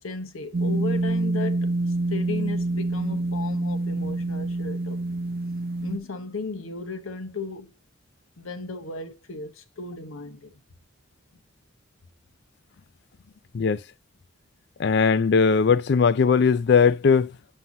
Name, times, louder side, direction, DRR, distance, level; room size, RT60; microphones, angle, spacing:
voice 1, 0.0-5.0 5.8-7.7 8.4-10.5, left 3 dB, 85° left, 1.1 m, -35 dB
sound 1, 0.5-6.0, right 2 dB, 45° right, 0.6 m, -26 dB
voice 2, 14.8-17.3, left 5 dB, 55° left, 0.4 m, -19 dB
7.7 x 5.6 x 2.7 m
head